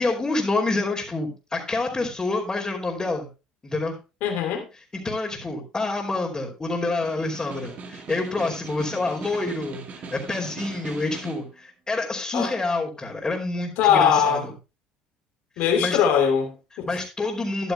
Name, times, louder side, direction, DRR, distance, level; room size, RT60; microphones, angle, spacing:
voice 1, 0.0-3.3 3.6-4.0 4.9-14.5 15.6-16.0 16.9-17.7, left 2 dB, 25° left, 3.3 m, -27 dB
voice 2, 4.2-4.6 12.3-12.5 13.8-14.5 15.6-16.9, left 8 dB, 65° left, 2.8 m, -21 dB
Snare drum, 6.9-11.5, right 4 dB, 45° right, 2.1 m, -39 dB
13.5 x 11.5 x 2.2 m
hypercardioid pair, 65°, 4 cm